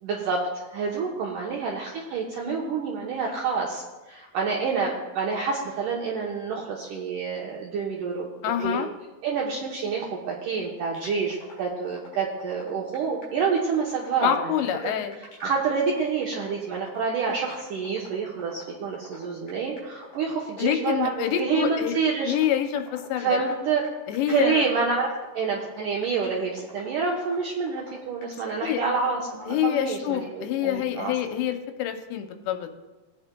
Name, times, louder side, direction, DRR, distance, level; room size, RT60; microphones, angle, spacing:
voice 1, 0.0-8.3 8.6-8.8 9.2-14.6 15.4-22.3 23.2-23.8 24.3-31.1, right 5 dB, 80° right, -3 dB, 1.9 m, -28 dB
voice 2, 8.4-8.9 14.2-15.1 20.6-22.0 22.2-23.4 24.1-24.7 28.6-28.8 29.5-32.7, left 11 dB, 85° left, 6 dB, 2.9 m, -26 dB
sound 1, 10.9-29.6, left 2 dB, 45° left, 4.9 m, -46 dB
17.5 x 8.7 x 2.2 m, 1.2 s
omnidirectional pair, 4.9 m